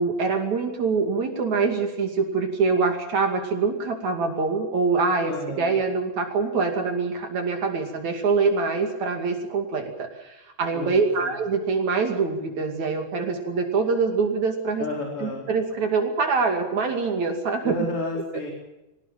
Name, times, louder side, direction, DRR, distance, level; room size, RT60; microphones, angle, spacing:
voice 1, 0.0-14.9 15.2-17.7, right 4 dB, 65° right, 4 dB, 3.8 m, -24 dB
voice 2, 5.3-5.8 10.7-11.3 14.8-15.5 17.6-18.5, left 2 dB, 45° left, -1 dB, 5.0 m, -31 dB
23.0 x 19.5 x 7.5 m, 0.97 s
omnidirectional pair, 3.6 m